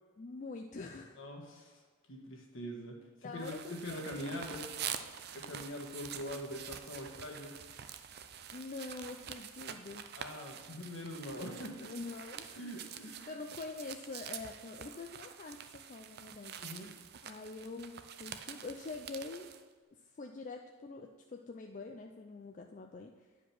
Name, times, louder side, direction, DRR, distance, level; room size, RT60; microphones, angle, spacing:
voice 1, 0.2-1.2 3.2-4.4 5.3-5.4 8.5-10.2 11.8-12.6 13.2-16.6 17.2-19.5 19.9-23.3, left 3 dB, 35° left, 3 dB, 0.4 m, -45 dB
voice 2, 1.2-1.8 2.1-4.6 5.3-7.5 10.1-11.9 12.5-13.3 16.6-16.9, left 1 dB, 60° left, 0 dB, 1.5 m, -43 dB
sound 1, 3.4-19.6, right 9 dB, 45° right, 0.4 m, -46 dB
9.7 x 5.0 x 5.8 m, 1.4 s
head